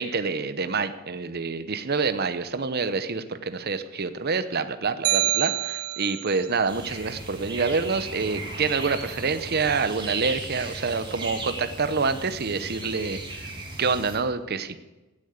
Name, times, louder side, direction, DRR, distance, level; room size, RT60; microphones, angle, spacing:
voice 1, 0.0-13.5 13.8-14.8, right 4 dB, 45° right, 10 dB, 0.8 m, -27 dB
sound 1, 5.0-6.4, right 16 dB, 70° right, 0.4 m, -26 dB
sound 2, 6.7-14.2, right 2 dB, 20° right, 2.6 m, -37 dB
16.0 x 8.6 x 8.1 m, 1.1 s
head